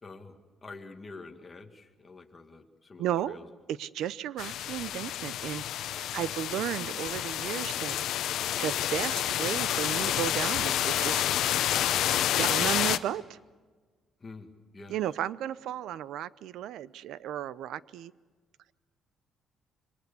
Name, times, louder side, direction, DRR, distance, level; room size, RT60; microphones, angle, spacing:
voice 1, 0.0-3.5 6.1-6.4 14.2-15.0, left 3 dB, 20° left, 4 dB, 2.0 m, -47 dB
voice 2, 3.0-3.4 3.7-8.0 8.6-11.2 11.5-11.7 12.2-13.4 14.9-18.1, right 11 dB, 75° right, 18 dB, 0.7 m, -34 dB
sound 1, 4.4-13.0, left 11 dB, 70° left, 0.8 m, -29 dB
27.0 x 23.5 x 7.0 m, 1.4 s
cardioid pair, 155°, 0 cm